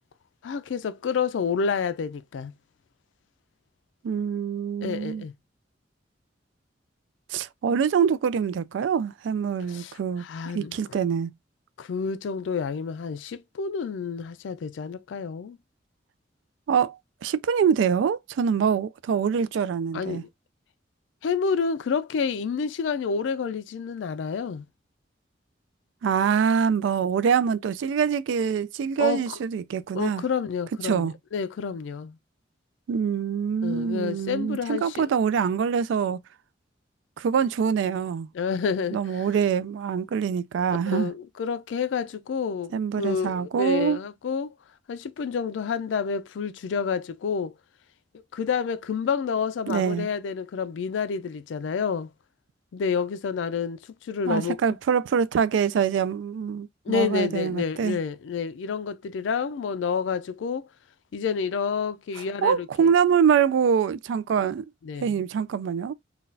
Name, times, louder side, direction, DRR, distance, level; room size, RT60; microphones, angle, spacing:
voice 1, 0.4-2.5 4.8-5.3 9.7-9.9 10.2-10.8 11.8-15.6 19.9-20.3 21.2-24.6 29.0-29.2 29.9-32.1 33.6-35.1 38.3-39.3 40.9-44.5 44.9-47.5 48.3-52.1 52.7-54.6 56.9-60.7 61.1-62.9 64.8-65.1, left 6 dB, 80° left, 0.4 m, -29 dB
voice 2, 4.0-5.2 7.3-10.2 10.5-11.3 16.7-20.2 26.0-30.2 30.8-31.1 32.9-36.2 37.2-38.3 38.9-41.1 42.7-44.0 49.7-50.1 54.3-58.0 62.4-64.7 65.0-65.9, right 7 dB, 90° right, 0.3 m, -24 dB
3.8 x 2.3 x 2.6 m
head